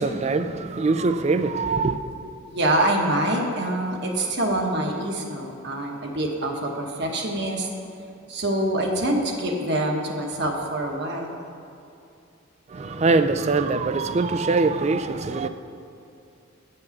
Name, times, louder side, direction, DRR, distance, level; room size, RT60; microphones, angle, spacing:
voice 1, 0.0-2.0 12.7-15.5, right 3 dB, 30° right, 11 dB, 0.3 m, -23 dB
voice 2, 2.5-7.7 8.3-11.3, right 1 dB, 55° right, 1 dB, 1.2 m, -25 dB
9.3 x 5.5 x 7.1 m, 2.6 s
head